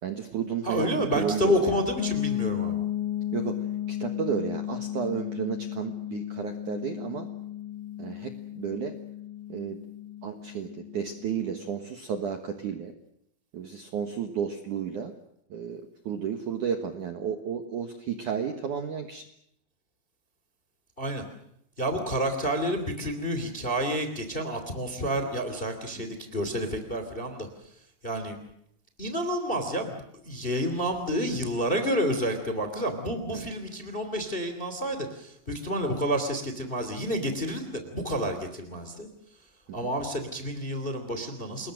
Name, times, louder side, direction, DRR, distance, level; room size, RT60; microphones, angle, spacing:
voice 1, 0.0-1.7 3.3-7.3 8.0-9.0 9.5-9.8 10.2-12.9 13.5-15.1 15.5-19.2 33.3-33.5 39.7-39.9, right 7 dB, 60° right, 5 dB, 2.1 m, -32 dB
voice 2, 0.6-2.8 21.0-21.2 21.8-27.5 28.0-28.4 29.0-39.1 39.7-41.7, equal, 15° left, 7 dB, 1.9 m, -29 dB
sound 1, 2.0-11.7, left 12 dB, 65° left, 2.4 m, -34 dB
29.0 x 21.5 x 6.5 m, 0.75 s
omnidirectional pair, 5.4 m